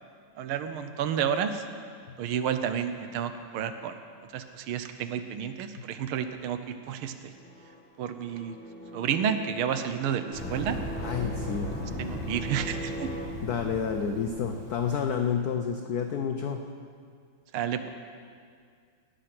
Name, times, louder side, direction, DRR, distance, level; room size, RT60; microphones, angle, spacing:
voice 1, 0.4-1.6 2.2-4.0 4.3-7.3 8.0-8.6 8.9-10.8 12.0-13.1 17.5-17.9, right 8 dB, 75° right, 9 dB, 1.6 m, -31 dB
sound 1, 7.3-13.2, equal, 5° left, 1.1 m, -42 dB
sound 2, 10.3-15.0, left 1 dB, 55° left, 4.6 m, -37 dB
voice 2, 11.0-11.7 13.4-16.6, left 7 dB, 80° left, 5 dB, 0.8 m, -29 dB
18.5 x 7.6 x 5.9 m, 2.1 s
omnidirectional pair, 2.4 m